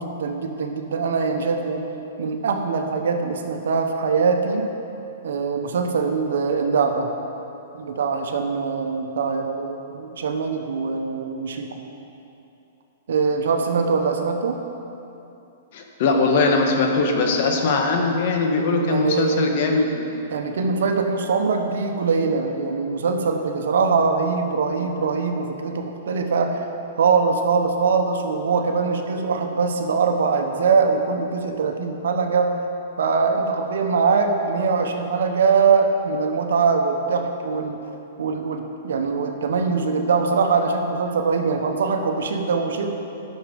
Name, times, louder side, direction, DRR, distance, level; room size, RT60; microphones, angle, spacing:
voice 1, 0.0-1.9 2.2-4.7 5.2-7.1 7.7-11.8 13.1-14.6 18.9-19.6 20.3-26.7 27.0-32.6 33.0-37.8 38.2-42.9, right 5 dB, 80° right, 4 dB, 1.0 m, -22 dB
voice 2, 15.7-20.1, left 3 dB, 55° left, 2 dB, 1.4 m, -21 dB
12.0 x 6.5 x 5.2 m, 2.9 s
hypercardioid pair, 145°, 0 cm